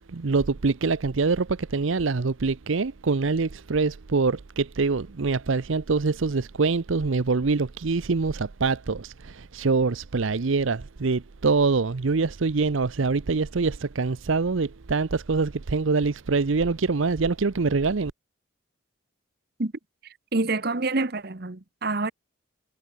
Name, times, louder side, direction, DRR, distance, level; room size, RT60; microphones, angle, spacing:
voice 1, 0.1-18.1, right 4 dB, 75° right, 0.7 m, -24 dB
voice 2, 20.3-22.1, right 3 dB, 50° right, 1.1 m, -27 dB
head